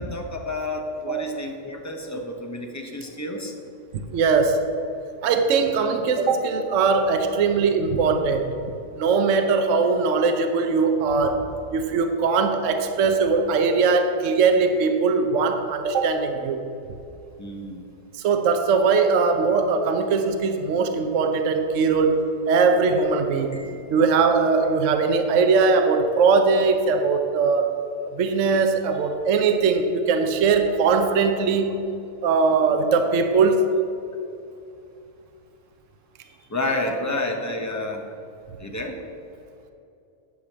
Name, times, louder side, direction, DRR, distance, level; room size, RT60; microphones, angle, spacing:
voice 1, 0.0-3.5 17.4-17.8 23.5-24.0 36.5-38.0 38.6-39.0, left 2 dB, 15° left, 2 dB, 0.7 m, -30 dB
voice 2, 4.1-4.6 5.2-8.5 9.0-11.5 11.7-16.6 18.2-23.6 23.9-27.8 28.1-31.7 32.2-33.6, right 4 dB, 60° right, 6 dB, 1.0 m, -20 dB
9.6 x 5.0 x 7.3 m, 2.7 s
omnidirectional pair, 1.6 m